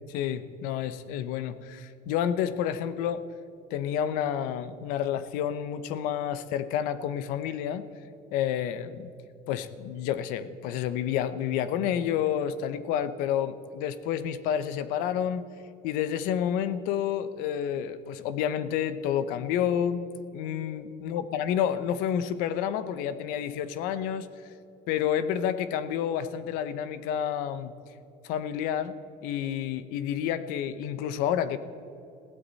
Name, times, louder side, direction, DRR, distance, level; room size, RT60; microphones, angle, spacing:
voice 1, 0.1-3.2 3.7-7.8 8.3-9.1 9.5-15.5 15.8-24.3 24.9-27.7 28.2-28.9 29.2-31.6, left 9 dB, 70° left, 13 dB, 0.9 m, -29 dB
21.0 x 15.5 x 4.1 m, 2.8 s
cardioid pair, 175°, 15 cm